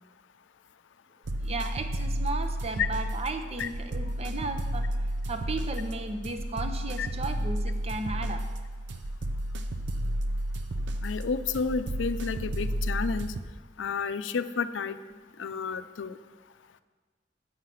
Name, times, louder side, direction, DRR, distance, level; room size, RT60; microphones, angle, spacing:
sound 1, 1.2-13.4, right 1 dB, 70° right, 0.6 m, -32 dB
voice 1, 1.4-4.9 5.3-8.4, right 2 dB, 35° right, 7 dB, 0.7 m, -35 dB
voice 2, 11.0-13.3 13.8-15.0 15.4-16.2, left 5 dB, 90° left, 12 dB, 0.5 m, -31 dB
7.9 x 5.7 x 7.5 m, 1.4 s
head